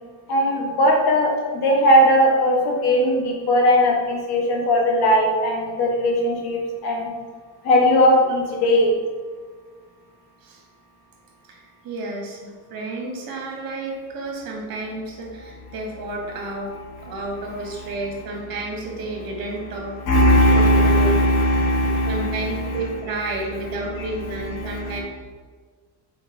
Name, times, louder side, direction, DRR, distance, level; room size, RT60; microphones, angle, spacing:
voice 1, 0.3-7.1 7.6-8.9 17.0-17.1 20.1-22.8 23.9-25.0, equal, 70° left, 0 dB, 1.5 m, -19 dB
voice 2, 11.5-16.7 17.0-19.9 20.5-21.1 22.1-25.0, right 2 dB, 60° right, 0 dB, 1.7 m, -31 dB
5.1 x 4.5 x 4.3 m, 1.5 s
cardioid pair, 135°, 39 cm